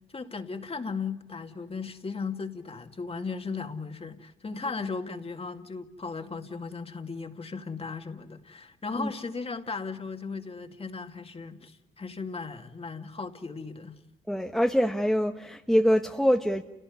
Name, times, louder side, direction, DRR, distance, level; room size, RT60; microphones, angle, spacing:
voice 1, 0.1-14.0, left 4 dB, 30° left, 2.3 m, -36 dB
voice 2, 14.3-16.6, equal, ahead, 1.2 m, -24 dB
30.0 x 17.5 x 9.6 m
cardioid pair, 90°, 20 cm